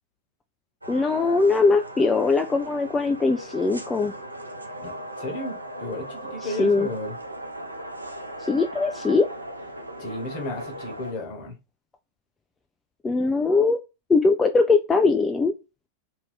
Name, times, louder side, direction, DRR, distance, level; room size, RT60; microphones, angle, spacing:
sound 1, 0.8-11.1, right 1 dB, 85° right, 0.4 m, -38 dB
voice 1, 0.9-4.1 6.4-6.9 8.5-9.3 13.0-13.8 14.1-15.5, left 3 dB, 15° left, 0.3 m, -21 dB
voice 2, 4.8-7.1 10.0-11.5, left 1 dB, 45° left, 1.2 m, -33 dB
2.7 x 2.6 x 3.4 m
figure-of-eight pair, 90°, 0 cm